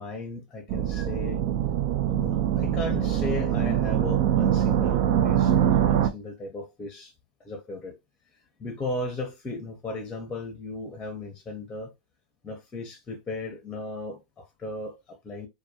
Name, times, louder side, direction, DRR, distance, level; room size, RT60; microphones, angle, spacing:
voice 1, 0.0-1.4 2.0-7.1 7.4-8.0 8.6-11.9 12.4-15.5, left 2 dB, 20° left, 0.7 m, -36 dB
sound 1, 0.7-6.1, right 10 dB, 50° right, 0.4 m, -23 dB
2.2 x 2.2 x 2.7 m
hypercardioid pair, 100°, 5 cm